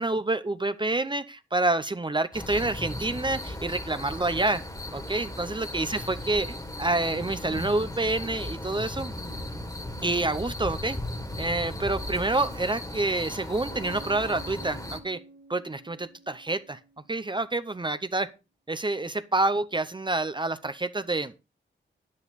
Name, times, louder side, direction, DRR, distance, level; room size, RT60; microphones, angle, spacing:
voice 1, 0.0-4.6 4.9-9.2 10.0-11.0 11.4-15.2 15.5-16.8 17.1-18.3 18.7-21.3, right 2 dB, 25° right, 12 dB, 0.7 m, -28 dB
sound 1, 2.3-15.0, left 1 dB, 20° left, 2.0 m, -36 dB
Explosion, 5.9-8.5 8.9-9.0, left 2 dB, 75° left, 2.8 m, -54 dB
Bass guitar, 13.7-17.3, right 3 dB, 55° right, 1.2 m, -50 dB
10.5 x 9.8 x 4.1 m, 0.29 s
wide cardioid pair, 95°, 20 cm